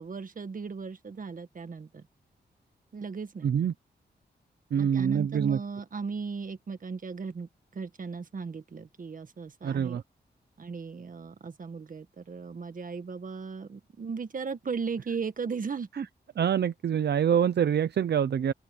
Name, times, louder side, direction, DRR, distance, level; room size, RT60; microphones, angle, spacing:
voice 1, 0.0-2.0 2.9-3.5 4.7-10.0 10.6-16.1, right 5 dB, 50° right, 1.7 m, -37 dB
voice 2, 3.4-3.7 4.7-5.6 9.6-10.0 15.9-16.0 16.4-18.5, right 8 dB, 70° right, 0.7 m, -25 dB
open air
cardioid pair, 90°, 18 cm